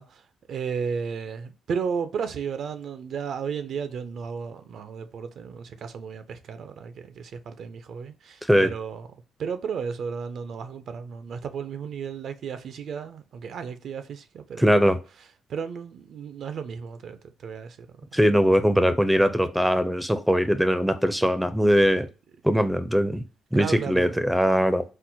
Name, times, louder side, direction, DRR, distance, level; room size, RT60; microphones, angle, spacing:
voice 1, 0.0-9.1 9.4-14.8 15.5-18.2 23.5-24.2, right 6 dB, 65° right, 0.4 m, -34 dB
voice 2, 14.6-15.0 18.1-22.1 22.4-23.2 23.5-24.8, equal, 5° right, 0.4 m, -21 dB
4.3 x 2.1 x 2.6 m
cardioid pair, 75°, 0 cm